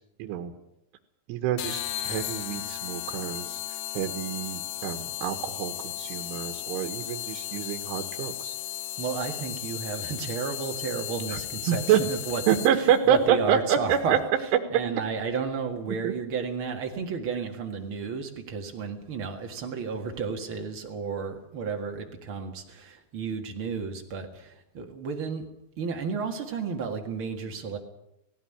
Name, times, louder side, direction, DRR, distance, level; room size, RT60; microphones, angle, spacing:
voice 1, 0.2-0.5 1.3-3.6 3.9-8.5 11.3-11.4 11.7-12.0 12.5-14.2 15.9-16.1, right 9 dB, 85° right, 5 dB, 3.7 m, -27 dB
sound 1, 1.6-13.0, left 14 dB, 75° left, 2.2 m, -35 dB
voice 2, 9.0-25.5 25.8-27.8, right 5 dB, 60° right, 4 dB, 1.4 m, -32 dB
18.5 x 16.5 x 10.0 m, 0.84 s
omnidirectional pair, 5.4 m